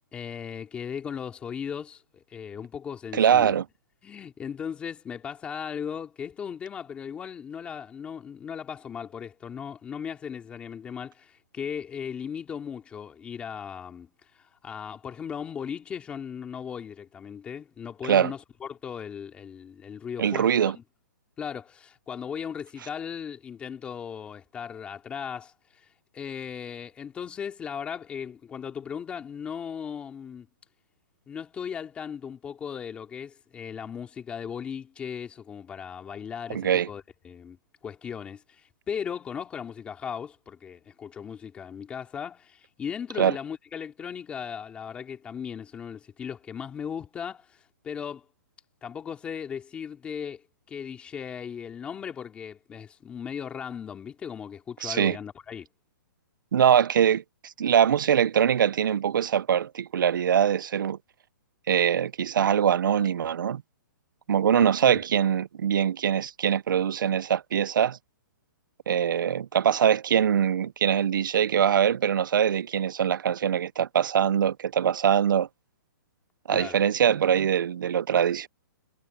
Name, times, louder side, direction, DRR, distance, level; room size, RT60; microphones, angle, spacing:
voice 1, 0.1-3.5 4.0-20.8 21.4-25.9 26.1-30.5 31.3-37.6 37.8-48.3 48.8-55.7 64.6-65.0 76.5-76.8, left 7 dB, 10° left, 2.7 m, -37 dB
voice 2, 3.1-3.6 18.0-18.3 20.2-20.8 36.5-36.9 43.2-43.4 54.8-55.2 56.5-61.0 61.7-63.6 64.3-68.0 68.9-75.5 76.5-78.5, right 9 dB, 75° right, 0.5 m, -23 dB
hypercardioid pair, 170°, 11 cm